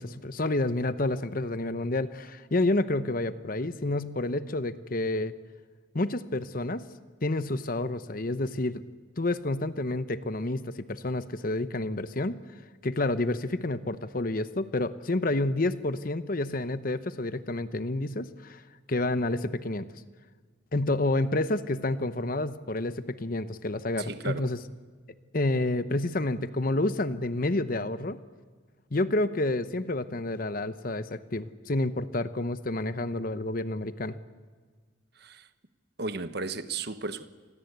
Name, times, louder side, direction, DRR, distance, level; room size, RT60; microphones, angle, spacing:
voice 1, 0.0-5.3 5.9-6.8 7.2-8.8 9.2-12.4 12.8-18.6 18.9-19.8 20.7-24.6 25.3-28.2 28.9-34.1, left 2 dB, 45° left, 0.9 m, -29 dB
voice 2, 24.0-24.5 35.2-35.5 36.0-37.3, right 3 dB, 55° right, 1.3 m, -34 dB
28.5 x 21.0 x 8.1 m
head